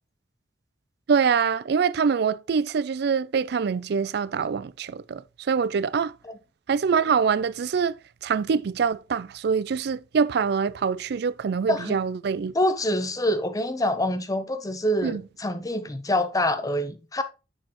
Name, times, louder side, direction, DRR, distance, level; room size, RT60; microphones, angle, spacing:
voice 1, 1.1-6.1 6.7-8.0 8.2-12.5 15.0-15.2, right 6 dB, 65° right, 0.4 m, -24 dB
voice 2, 12.5-17.2, left 1 dB, 20° left, 0.7 m, -26 dB
6.5 x 6.3 x 3.0 m
head